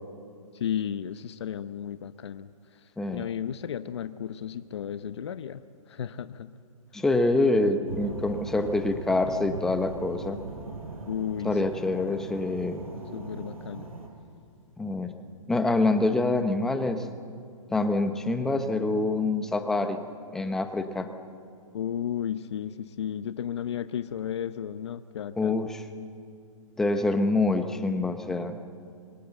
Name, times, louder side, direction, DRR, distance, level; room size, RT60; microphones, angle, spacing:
voice 1, 0.5-2.8 3.1-5.6 5.9-6.5 11.1-11.7 13.1-13.9 21.7-25.6, left 9 dB, 50° left, 12 dB, 0.8 m, -34 dB
voice 2, 3.0-3.3 6.9-10.4 11.4-12.8 14.8-15.1 15.5-17.1 17.7-20.1 20.3-21.1 25.4-25.8 26.8-28.6, left 2 dB, 5° left, 7 dB, 0.7 m, -26 dB
sound 1, 7.8-14.1, right 3 dB, 80° right, 6.4 m, -40 dB
28.0 x 23.5 x 8.0 m, 2.4 s
hypercardioid pair, 170°, 18 cm